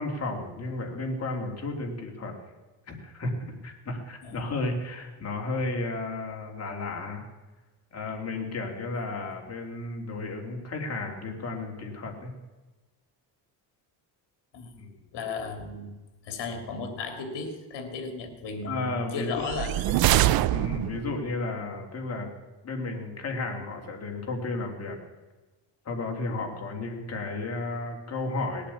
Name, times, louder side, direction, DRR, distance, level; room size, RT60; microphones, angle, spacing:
voice 1, 0.0-2.4 2.9-7.2 7.9-12.3 14.8-15.0 18.6-19.5 20.5-22.3 22.6-25.0 25.8-28.7, left 2 dB, 35° left, 2 dB, 3.0 m, -33 dB
voice 2, 15.1-15.9 16.2-19.8, left 4 dB, 65° left, 7 dB, 3.1 m, -35 dB
sound 1, 19.4-21.2, right 14 dB, 55° right, 0.5 m, -24 dB
19.0 x 8.5 x 8.6 m, 1.2 s
cardioid pair, 140°, 44 cm